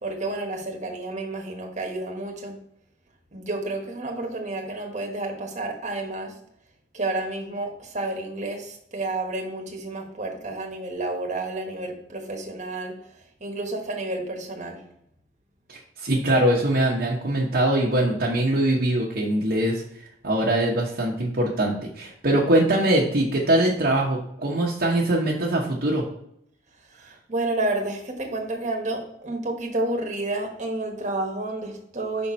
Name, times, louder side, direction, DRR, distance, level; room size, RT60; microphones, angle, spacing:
voice 1, 0.0-2.6 3.3-6.4 6.9-12.9 13.4-14.8 26.9-32.3, right 2 dB, 45° right, 1 dB, 1.3 m, -30 dB
voice 2, 15.7-19.8 20.2-26.0, right 1 dB, 60° right, -3 dB, 1.0 m, -22 dB
5.6 x 4.1 x 4.3 m, 0.71 s
head